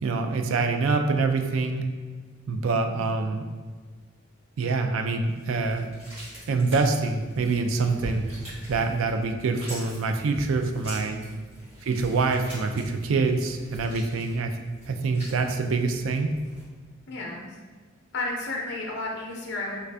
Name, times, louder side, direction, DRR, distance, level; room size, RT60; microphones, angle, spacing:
voice 1, 0.0-1.9 2.5-3.5 4.6-5.9 6.5-8.2 8.7-11.2 11.8-14.6 14.9-16.3, right 3 dB, 70° right, 5 dB, 0.3 m, -25 dB
sound 1, 5.2-16.6, equal, 30° right, 1.4 m, -43 dB
voice 2, 11.0-11.4 17.1-17.5 18.1-19.9, left 2 dB, 50° left, -1 dB, 0.6 m, -33 dB
3.2 x 2.5 x 3.3 m, 1.5 s
head